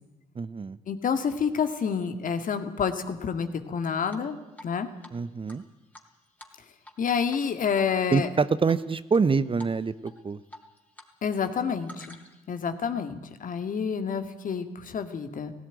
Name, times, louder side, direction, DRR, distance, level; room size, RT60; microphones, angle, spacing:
voice 1, 0.3-0.8 5.1-5.6 8.1-10.4, right 5 dB, 30° right, 16 dB, 0.9 m, -26 dB
voice 2, 0.9-4.4 4.6-4.9 7.0-8.3 11.2-12.2 12.5-15.5, left 6 dB, 55° left, 8 dB, 2.1 m, -28 dB
Drip, 4.1-4.7 5.0-5.1 5.5-7.0 7.3-7.5 7.8-8.3 8.7-9.2 9.6-9.8 10.0-11.1 11.4-12.5, left 1 dB, 10° left, 3.7 m, -48 dB
17.0 x 16.5 x 9.3 m, 1.1 s
hypercardioid pair, 45°, 17 cm